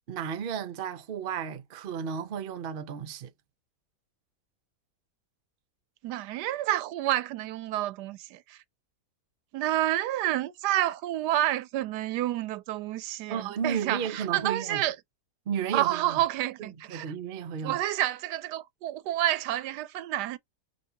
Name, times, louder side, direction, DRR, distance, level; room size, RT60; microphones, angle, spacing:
voice 1, 0.1-3.3 13.3-14.8 15.5-16.2 16.6-17.8, right 7 dB, 55° right, 0.6 m, -33 dB
voice 2, 6.0-8.6 9.5-15.0 15.7-17.1 17.6-20.4, right 14 dB, 85° right, 1.2 m, -29 dB
5.1 x 2.6 x 2.8 m
omnidirectional pair, 1.7 m